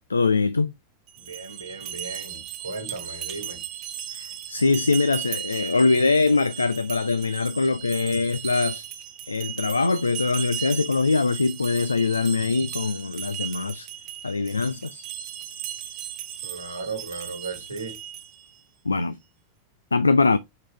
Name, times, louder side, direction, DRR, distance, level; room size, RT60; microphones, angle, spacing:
voice 1, 0.1-0.7 4.1-8.8 9.3-13.9 14.2-15.0 18.8-19.2 19.9-20.4, left 3 dB, 80° left, 0.4 m, -23 dB
sound 1, 1.1-18.5, right 11 dB, 40° right, 0.9 m, -36 dB
voice 2, 1.2-3.6 16.4-18.0, right 3 dB, 80° right, 1.6 m, -36 dB
5.5 x 3.8 x 5.6 m
figure-of-eight pair, 90°, 0 cm